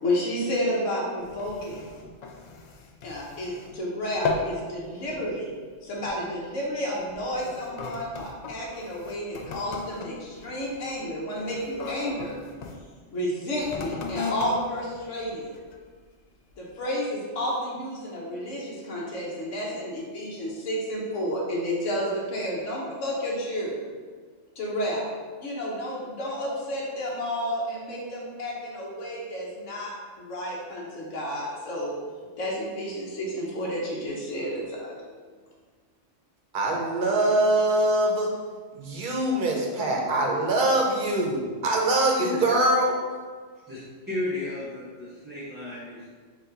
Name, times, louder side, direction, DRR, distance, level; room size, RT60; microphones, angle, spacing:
voice 1, 0.0-1.9 3.0-5.5 5.8-12.4 13.1-15.5 16.6-23.8 24.6-25.1 25.4-32.0 32.4-35.0, equal, 85° left, -4 dB, 1.3 m, -31 dB
sound 1, 1.2-3.8 4.1-4.6 5.0-5.3 6.0-6.2 7.0-12.8 13.6-15.9 16.5-16.6, left 4 dB, 70° left, 0.4 m, -36 dB
voice 2, 36.5-38.3 38.8-43.0, right 1 dB, 50° right, -1 dB, 0.8 m, -23 dB
voice 3, 44.1-46.1, left 2 dB, 10° right, -11 dB, 0.6 m, -33 dB
4.6 x 2.7 x 3.9 m, 1.5 s
omnidirectional pair, 1.3 m